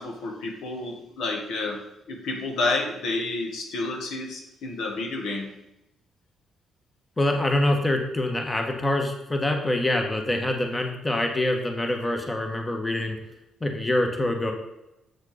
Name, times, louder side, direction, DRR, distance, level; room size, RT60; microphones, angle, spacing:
voice 1, 0.0-1.8 2.1-5.5, left 2 dB, 80° left, 2 dB, 1.8 m, -30 dB
voice 2, 7.2-13.2 13.6-14.5, left 1 dB, 15° left, 3 dB, 1.5 m, -25 dB
8.0 x 6.4 x 5.1 m, 0.87 s
cardioid pair, 90°, 0 cm